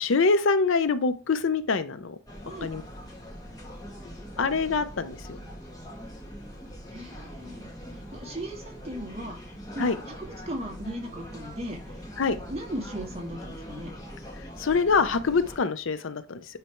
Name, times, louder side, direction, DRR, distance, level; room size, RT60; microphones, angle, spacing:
voice 1, 0.0-2.2 2.6-2.8 4.4-5.4 9.8-10.0 12.2-12.4 14.6-16.4, left 4 dB, 60° left, 0.5 m, -25 dB
sound 1, 2.3-15.6, equal, 15° left, 1.5 m, -42 dB
voice 2, 6.9-9.4 9.7-12.0 12.5-13.9, right 1 dB, 30° right, 1.6 m, -37 dB
9.1 x 3.3 x 4.5 m
head